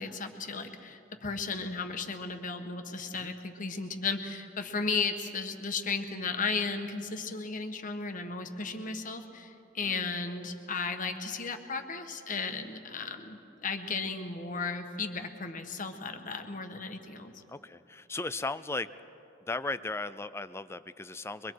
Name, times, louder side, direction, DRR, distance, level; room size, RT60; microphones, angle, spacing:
voice 1, 0.0-17.3, left 4 dB, 45° left, 6 dB, 1.3 m, -35 dB
voice 2, 17.5-18.9 19.4-21.5, left 3 dB, 15° left, 14 dB, 0.4 m, -36 dB
24.5 x 22.5 x 4.7 m, 2.8 s
head